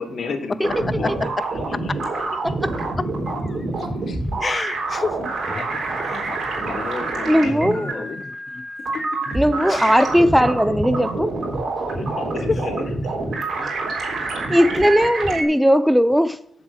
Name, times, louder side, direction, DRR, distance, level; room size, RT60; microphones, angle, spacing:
voice 1, 0.0-2.0 3.7-4.4 5.0-5.1 5.5-8.3 8.9-9.2 11.9-13.2 14.8-14.9, left 4 dB, 65° left, 1.7 m, -34 dB
sound 1, 0.6-15.4, right 2 dB, 65° right, 3.7 m, -27 dB
voice 2, 2.8-3.7 4.0-5.2 5.4-5.8 6.1-6.3 7.8-7.9 9.3-9.4 9.7-9.8 11.8-11.9 12.5-12.6 13.4-13.8, left 4 dB, 40° left, 0.6 m, -30 dB
voice 3, 7.3-8.1 9.3-11.3 14.5-16.4, equal, ahead, 1.0 m, -18 dB
7.6 x 7.4 x 6.3 m
supercardioid pair, 45°, 0 cm